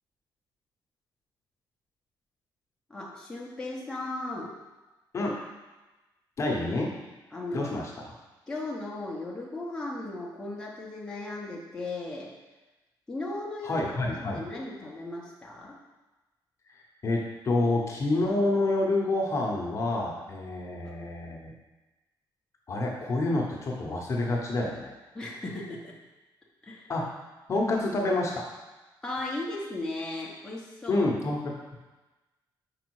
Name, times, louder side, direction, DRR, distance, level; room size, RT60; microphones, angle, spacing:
voice 1, 2.9-4.5 7.3-7.7 8.5-12.3 13.1-15.8 25.1-25.9 26.6-26.9 29.0-31.1, left 2 dB, 10° left, -4 dB, 0.9 m, -36 dB
voice 2, 6.4-6.9 7.5-7.9 13.6-14.4 17.0-21.5 22.7-24.9 26.9-27.1 27.5-28.4 30.9-31.5, left 2 dB, 35° left, -1 dB, 0.9 m, -28 dB
5.2 x 4.9 x 4.7 m, 1.1 s
cardioid pair, 155°, 8 cm